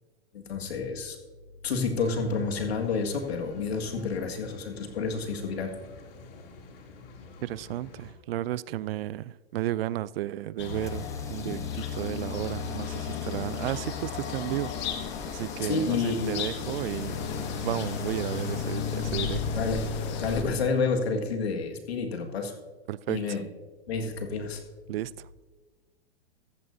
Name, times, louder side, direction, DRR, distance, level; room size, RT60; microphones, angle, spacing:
voice 1, 0.3-1.2 1.6-5.7 15.6-16.5 19.5-19.9 20.2-22.5 23.1-23.4 23.9-24.6, left 4 dB, 80° left, 3 dB, 1.8 m, -29 dB
sound 1, 1.9-8.1, left 3 dB, 65° left, 2.8 m, -48 dB
voice 2, 7.4-17.2 17.5-19.4 22.9-23.4 24.9-25.4, right 14 dB, 70° right, 20 dB, 0.5 m, -33 dB
sound 2, 10.6-20.4, left 7 dB, 35° left, 1.6 m, -33 dB
sound 3, 10.8-20.9, left 1 dB, 10° left, 0.8 m, -47 dB
14.0 x 13.5 x 2.7 m, 1.4 s
hypercardioid pair, 125°, 31 cm